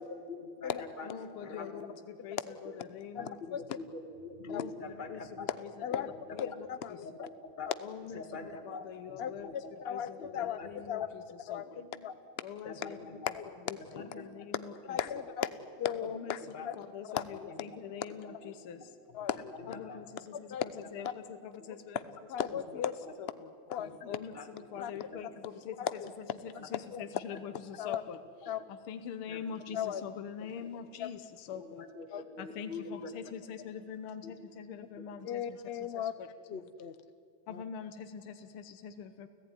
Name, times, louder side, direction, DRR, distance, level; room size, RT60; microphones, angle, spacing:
voice 1, 0.0-1.8 2.6-2.7 3.1-5.5 5.9-6.4 7.0-7.7 8.1-9.7 10.3-10.7 11.7-12.0 12.6-13.3 13.9-14.2 16.5-16.7 17.1-17.2 17.5-17.6 18.2-18.5 19.5-20.1 23.8-24.5 24.7-24.8 25.1-25.3 26.5-26.7 27.3-27.4 28.4-28.5 29.2-29.4 29.7-29.8 30.4-30.5 31.5-33.1 34.2-34.3 35.0-35.3, left 3 dB, 25° left, 6 dB, 1.7 m, -45 dB
voice 2, 1.0-3.6 4.5-4.7 5.1-6.0 6.3-7.1 7.8-11.8 12.4-13.0 13.5-15.0 16.1-19.0 19.7-22.0 22.4-22.5 23.2-23.5 24.1-36.7 37.5-39.3, left 7 dB, 85° left, 9 dB, 1.9 m, -45 dB
voice 3, 3.2-3.8 4.5-4.6 5.8-6.1 6.4-7.1 7.7-7.8 9.2-9.3 9.8-10.6 10.9-11.1 11.5-11.7 12.0-12.1 13.3-13.4 14.9-15.5 15.8-16.4 16.6-16.8 17.1-17.2 19.1-19.5 20.5-20.6 22.3-22.9 23.7-23.9 24.8-24.9 25.8-25.9 26.9-27.0 27.8-28.0 28.5-28.6 29.7-30.0 31.0-31.1 32.1-32.2 35.2-36.1 36.5-36.9 37.5-37.6, left 9 dB, 55° left, 13 dB, 0.6 m, -35 dB
29.5 x 16.0 x 9.7 m, 2.5 s
omnidirectional pair, 2.3 m